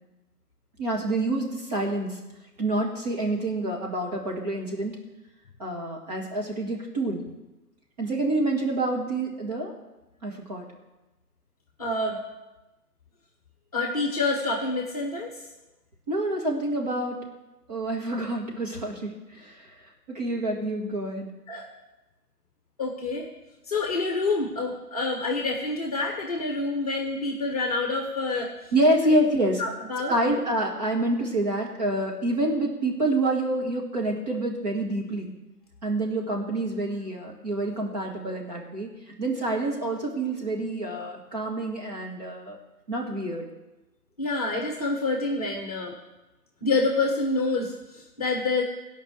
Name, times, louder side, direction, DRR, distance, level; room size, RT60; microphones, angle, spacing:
voice 1, 0.8-2.2 2.6-5.0 5.6-7.3 8.0-9.7 10.2-10.6 16.1-17.2 17.7-19.7 20.1-21.3 28.7-29.6 30.1-35.3 35.8-38.9 39.2-42.6 42.9-43.4, right 1 dB, 25° right, -1 dB, 1.7 m, -27 dB
voice 2, 11.8-12.2 13.7-15.3 21.5-21.7 22.8-23.3 23.7-28.5 29.6-30.4 44.2-46.0 46.6-48.6, left 3 dB, 25° left, 2 dB, 1.2 m, -27 dB
16.0 x 5.5 x 7.9 m, 1.1 s
figure-of-eight pair, 155°, 47 cm